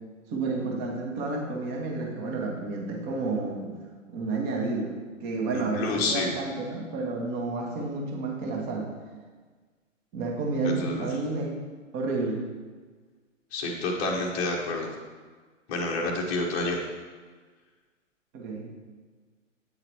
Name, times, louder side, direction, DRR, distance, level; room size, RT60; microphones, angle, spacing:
voice 1, 0.3-3.7 4.1-5.0 5.2-8.9 10.1-11.5 11.9-12.4 18.3-18.7, right 3 dB, 20° right, 1 dB, 0.9 m, -30 dB
voice 2, 5.5-6.3 10.8-11.1 13.5-14.9 15.7-16.8, left 2 dB, 20° left, -1 dB, 0.8 m, -28 dB
8.1 x 3.9 x 4.4 m, 1.4 s
figure-of-eight pair, 120°, 39 cm